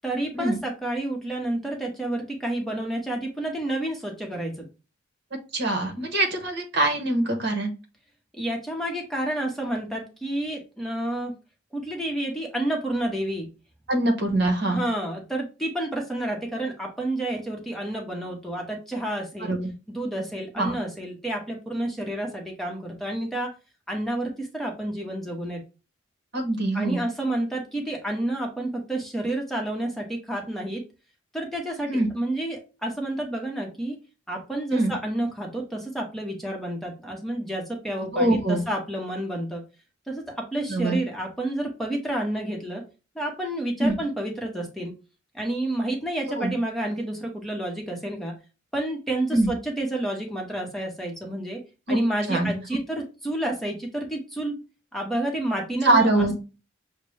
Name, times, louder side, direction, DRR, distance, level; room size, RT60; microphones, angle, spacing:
voice 1, 0.0-4.7 8.3-11.3 11.7-13.5 14.7-19.6 19.9-23.5 23.9-25.6 26.7-30.8 31.3-34.0 34.3-39.6 40.1-42.8 43.1-44.9 45.3-48.4 48.7-51.6 51.9-54.5 54.9-56.4, right 1 dB, ahead, 0 dB, 0.9 m, -30 dB
voice 2, 5.5-7.7 13.9-14.8 19.4-19.7 20.6-20.7 26.3-27.0 31.9-32.1 34.7-34.9 38.1-38.6 40.7-41.0 43.8-44.0 46.4-46.5 49.3-49.5 51.9-52.0 52.3-52.5 55.8-56.3, right 1 dB, 60° right, 4 dB, 1.2 m, -23 dB
6.5 x 2.2 x 3.2 m, 0.31 s
head